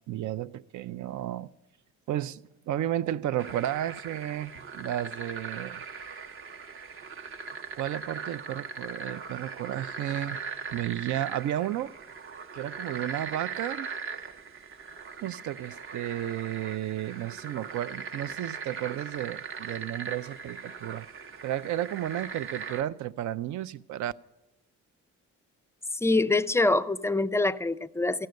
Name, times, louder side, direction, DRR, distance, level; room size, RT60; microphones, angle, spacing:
voice 1, 0.1-1.5 2.1-5.8 7.8-10.4 10.7-11.9 12.5-13.9 15.2-21.1 21.4-24.1, right 12 dB, 75° right, 0.5 m, -33 dB
sound 1, 3.4-22.8, right 5 dB, 45° right, 0.8 m, -40 dB
voice 2, 25.9-28.3, left 2 dB, 10° left, 0.4 m, -25 dB
14.0 x 6.4 x 9.3 m
cardioid pair, 90°, 30 cm